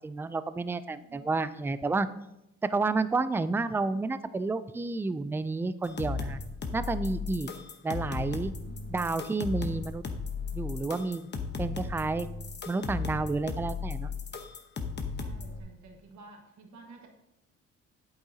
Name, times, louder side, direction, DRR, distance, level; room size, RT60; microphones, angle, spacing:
voice 1, 0.0-2.1 2.6-6.4 6.7-7.5 7.8-8.5 8.9-10.0 10.5-11.3 11.6-12.3 12.7-14.1, right 3 dB, 10° right, 14 dB, 0.3 m, -30 dB
voice 2, 1.1-1.4 8.6-9.0 15.2-17.1, right 3 dB, 70° right, 2 dB, 1.6 m, -52 dB
sound 1, 5.8-15.6, left 4 dB, 35° left, 1.0 m, -36 dB
8.7 x 7.9 x 2.8 m, 0.86 s
cardioid pair, 90°, 30 cm